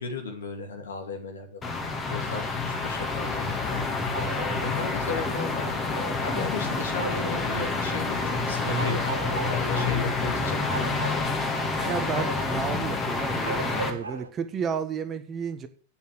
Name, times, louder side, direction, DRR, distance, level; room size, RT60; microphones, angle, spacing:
voice 1, 0.0-1.8 2.1-3.9 4.2-5.7 6.2-10.7, left 3 dB, 70° left, 4 dB, 2.5 m, -35 dB
sound 1, 1.6-13.9, left 3 dB, 20° left, 2.3 m, -28 dB
sound 2, 2.6-14.3, right 4 dB, 70° right, 1.2 m, -39 dB
voice 2, 11.5-15.7, right 7 dB, 25° right, 10 dB, 1.3 m, -32 dB
9.0 x 6.8 x 8.1 m, 0.41 s
figure-of-eight pair, 90°, 0 cm